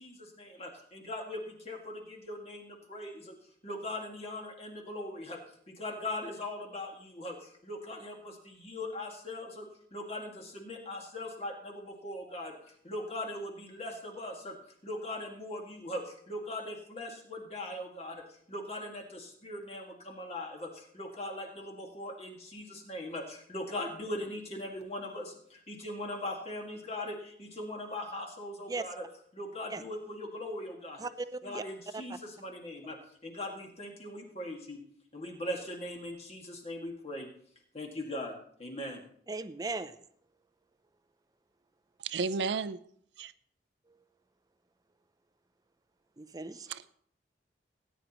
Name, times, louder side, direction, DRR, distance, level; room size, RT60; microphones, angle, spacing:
voice 1, 0.0-3.3 3.6-5.4 5.7-14.6 14.8-29.1 29.3-31.0 31.4-34.8 35.1-37.3 37.7-39.0, left 1 dB, 35° left, 0 dB, 2.0 m, -40 dB
voice 2, 31.0-31.6 31.9-32.0 39.3-40.0 46.2-46.7, right 3 dB, 20° right, 12 dB, 0.5 m, -37 dB
voice 3, 42.0-42.8 43.2-43.3 46.7-46.9, right 4 dB, 80° right, 15 dB, 0.5 m, -32 dB
18.0 x 9.8 x 3.0 m, 0.64 s
head